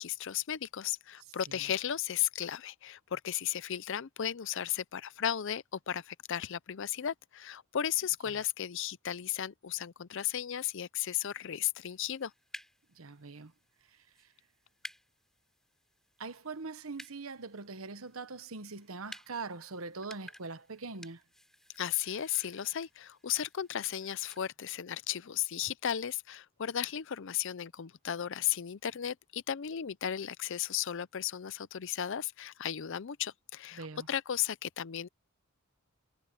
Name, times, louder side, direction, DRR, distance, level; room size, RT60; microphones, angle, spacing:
voice 1, 0.0-12.3 21.8-35.1, left 10 dB, 60° left, 0.5 m, -35 dB
sound 1, 11.9-24.4, equal, ahead, 4.3 m, -54 dB
voice 2, 13.0-13.5 16.2-21.2 33.7-34.1, right 4 dB, 75° right, 1.2 m, -42 dB
head